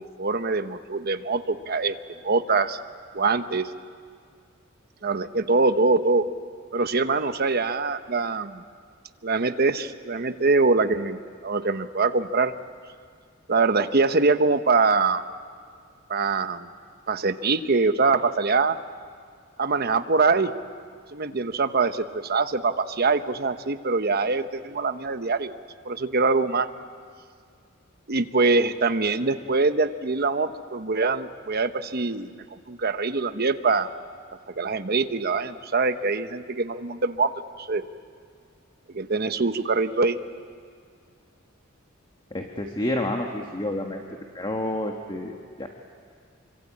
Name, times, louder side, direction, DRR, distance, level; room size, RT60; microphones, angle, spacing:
voice 1, 0.0-2.0 2.2-2.8 3.1-3.7 5.0-6.2 6.7-8.6 9.2-12.5 13.5-15.2 16.1-16.7 17.1-18.8 19.6-20.5 21.1-25.5 25.8-26.7 28.1-32.3 32.7-33.9 34.6-37.3 37.6-37.8 38.9-40.2, right 3 dB, 50° right, 9 dB, 1.1 m, -23 dB
voice 2, 42.3-45.7, left 1 dB, 25° left, 2 dB, 1.6 m, -30 dB
27.0 x 25.0 x 8.7 m, 2.2 s
head